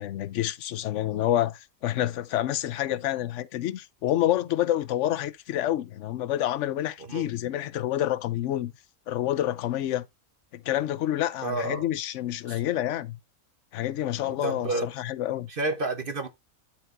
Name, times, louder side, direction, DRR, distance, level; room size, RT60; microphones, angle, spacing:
voice 1, 0.0-8.7 9.1-10.1 10.5-13.2 13.7-15.5, left 12 dB, 65° left, 0.9 m, -28 dB
voice 2, 11.4-11.9 12.5-12.6 14.3-14.9 15.5-16.3, right 2 dB, 45° right, 1.1 m, -30 dB
11.5 x 4.2 x 2.6 m
omnidirectional pair, 1.5 m